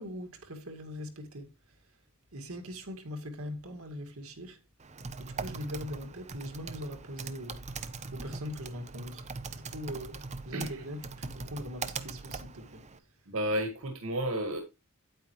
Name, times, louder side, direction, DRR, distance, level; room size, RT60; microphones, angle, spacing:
voice 1, 0.0-2.0 2.3-4.6 5.2-9.3 9.5-12.8, equal, 90° right, 2.0 m, -41 dB
Typing, 4.8-13.0, right 4 dB, 35° right, 0.8 m, -41 dB
voice 2, 10.5-10.8 13.3-14.6, right 1 dB, 70° right, 1.7 m, -32 dB
9.2 x 9.0 x 3.1 m
head